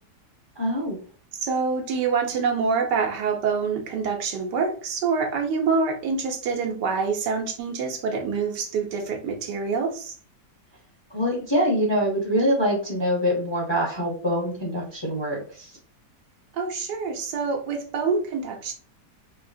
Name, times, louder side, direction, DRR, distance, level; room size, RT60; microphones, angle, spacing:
voice 1, 0.6-1.0 11.1-15.7, equal, 20° left, -2 dB, 0.8 m, -24 dB
voice 2, 1.4-10.1 16.5-18.7, right 5 dB, 80° right, 3 dB, 1.4 m, -26 dB
4.6 x 2.8 x 2.6 m, 0.41 s
omnidirectional pair, 1.8 m